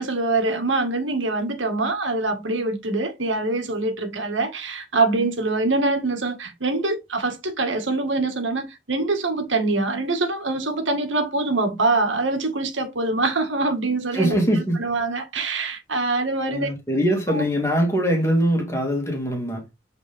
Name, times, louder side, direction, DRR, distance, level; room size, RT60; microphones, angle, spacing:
voice 1, 0.0-16.7 17.3-17.5, right 3 dB, 85° right, 2.0 m, -24 dB
voice 2, 14.1-14.7 16.5-19.6, equal, 15° left, 2.4 m, -22 dB
8.0 x 4.3 x 3.6 m
head